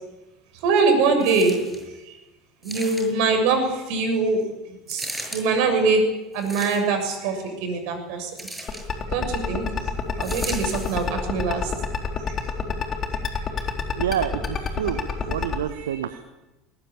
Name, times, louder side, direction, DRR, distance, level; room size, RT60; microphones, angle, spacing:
voice 1, 0.6-1.6 2.1-2.2 2.6-4.4 4.7-6.0 6.3-8.3 9.1-9.7 10.2-11.7 12.3-12.4 15.8-16.0, right 4 dB, 60° right, 6 dB, 6.8 m, -23 dB
sound 1, 1.2-1.9 2.6-3.3 4.9-5.4 6.3-7.1 8.4-8.9 10.2-11.1 11.8-11.9, right 1 dB, 5° right, 7.5 m, -36 dB
sound 2, 8.7-15.6, left 7 dB, 35° left, 3.8 m, -26 dB
voice 2, 14.0-16.2, right 9 dB, 75° right, 12 dB, 1.0 m, -28 dB
20.5 x 20.0 x 8.7 m, 1.1 s
figure-of-eight pair, 70°, 0 cm